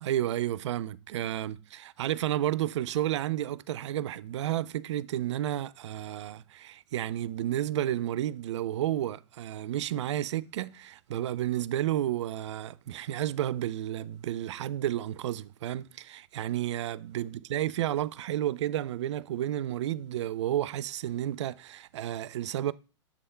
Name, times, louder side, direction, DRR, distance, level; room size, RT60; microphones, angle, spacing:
voice 1, 0.0-22.7, right 12 dB, 75° right, 0.4 m, -31 dB
7.1 x 3.5 x 4.4 m
hypercardioid pair, 125°, 15 cm